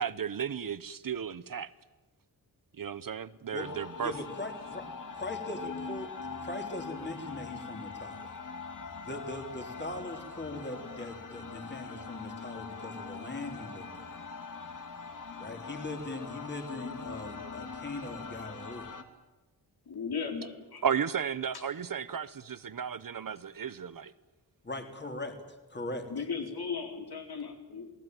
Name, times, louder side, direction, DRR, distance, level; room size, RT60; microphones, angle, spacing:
voice 1, 0.0-1.7 2.8-4.1 20.8-24.1, right 7 dB, 55° right, 0.9 m, -34 dB
sound 1, 3.6-19.0, left 5 dB, 50° left, 2.3 m, -42 dB
voice 2, 4.0-4.9 5.1-8.3 9.0-14.0 15.4-18.9 24.6-25.4 25.7-26.1, left 2 dB, 25° left, 3.4 m, -40 dB
voice 3, 19.9-20.8 21.5-21.6 26.1-27.9, left 5 dB, 70° left, 4.2 m, -36 dB
28.0 x 19.0 x 9.2 m
wide cardioid pair, 145°, 39 cm